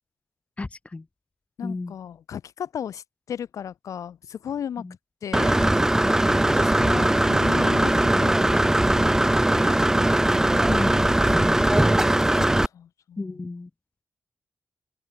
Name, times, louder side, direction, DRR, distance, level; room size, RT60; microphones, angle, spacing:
voice 1, 0.6-1.0 1.6-1.9 4.8-4.9 10.7-11.0 11.3-11.6 13.2-13.7, left 3 dB, 25° left, 2.2 m, -32 dB
voice 2, 1.6-4.8 5.2-5.6 6.3-8.8 9.1-9.9 12.3-13.5, left 8 dB, 85° left, 4.4 m, -36 dB
Engine / Mechanisms, 5.3-12.7, right 1 dB, 10° right, 1.9 m, -20 dB
wide cardioid pair, 135°, 5 cm